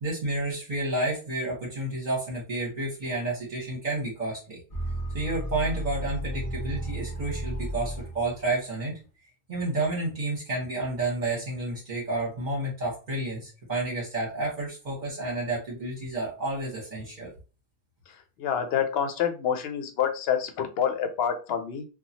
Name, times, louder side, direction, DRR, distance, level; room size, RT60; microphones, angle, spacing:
voice 1, 0.0-4.6 5.1-9.0 9.5-17.3, right 2 dB, 45° right, -3 dB, 1.0 m, -30 dB
sound 1, 4.7-8.5, right 1 dB, 20° left, 0.8 m, -33 dB
voice 2, 18.1-21.9, left 8 dB, 70° left, 7 dB, 0.8 m, -28 dB
2.9 x 2.2 x 2.7 m, 0.33 s
omnidirectional pair, 1.1 m